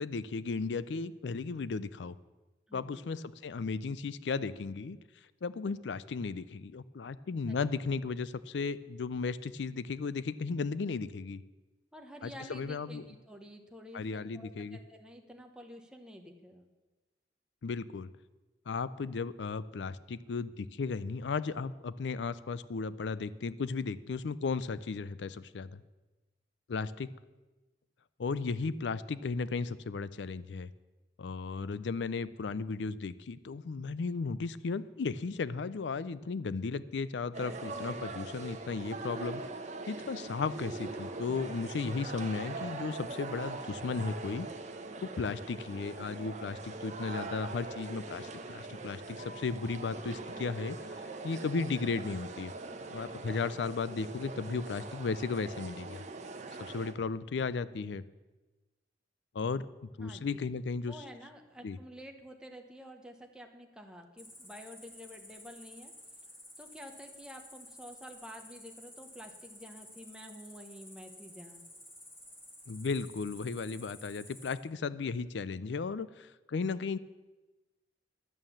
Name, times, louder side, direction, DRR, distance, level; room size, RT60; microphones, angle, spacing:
voice 1, 0.0-2.1 2.7-5.0 5.4-11.4 12.2-13.1 13.9-14.8 17.6-18.1 18.7-25.8 26.7-27.1 28.2-30.7 31.2-39.4 39.9-44.5 45.0-52.5 52.9-56.0 56.6-58.0 59.3-59.6 60.0-61.0 61.6-61.8 72.7-77.0, left 4 dB, 80° left, 17 dB, 0.5 m, -35 dB
voice 2, 2.7-3.1 11.9-16.6 60.0-60.4 60.9-65.9 66.6-71.6, equal, 5° right, 3 dB, 1.0 m, -50 dB
sound 1, 37.3-56.9, right 3 dB, 40° right, 1.0 m, -42 dB
sound 2, 49.2-56.2, left 1 dB, 50° left, 1.7 m, -64 dB
Cricket, 64.2-74.5, left 1 dB, 10° left, 2.0 m, -52 dB
11.0 x 9.0 x 7.2 m, 1.2 s
head